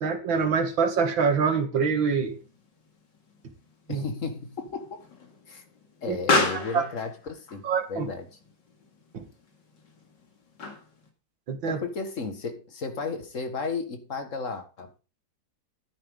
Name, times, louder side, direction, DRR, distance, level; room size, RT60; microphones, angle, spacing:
voice 1, 0.0-2.4 3.9-4.0 6.1-6.2 6.5-6.9 7.6-8.1 9.1-9.3 11.5-11.8, right 5 dB, 85° right, 7 dB, 2.4 m, -25 dB
Explosion, 2.1-11.1, left 3 dB, 70° left, 2.8 m, -33 dB
voice 2, 3.9-5.0 5.5-5.6 6.0-7.6 7.9-8.3 11.7-15.0, left 4 dB, 45° left, 7 dB, 2.0 m, -34 dB
13.0 x 10.0 x 3.8 m, 0.32 s
omnidirectional pair, 2.0 m